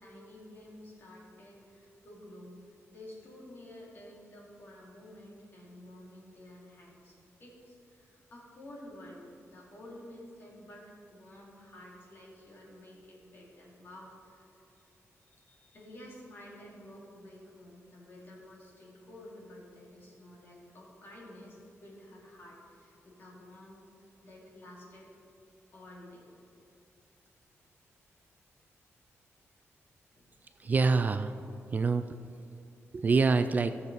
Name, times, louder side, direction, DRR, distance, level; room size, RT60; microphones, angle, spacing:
voice 1, 0.0-2.6 2.9-15.0 15.3-25.1 25.7-26.3 30.1-30.3, left 1 dB, 45° left, -4 dB, 2.6 m, -51 dB
voice 2, 30.6-32.2 32.9-33.8, right 4 dB, 35° right, 10 dB, 0.3 m, -26 dB
15.0 x 6.7 x 4.1 m, 2.7 s
wide cardioid pair, 145°, 5 cm